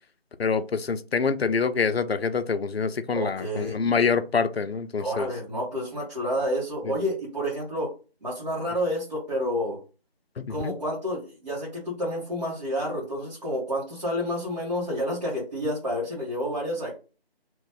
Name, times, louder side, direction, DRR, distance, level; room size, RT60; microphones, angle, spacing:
voice 1, 0.4-5.3 10.4-10.7, left 5 dB, 75° left, 0.5 m, -26 dB
voice 2, 3.1-3.8 5.0-7.9 8.2-9.8 10.5-16.9, equal, 45° right, 1.4 m, -29 dB
3.0 x 2.6 x 3.6 m
figure-of-eight pair, 165°, 31 cm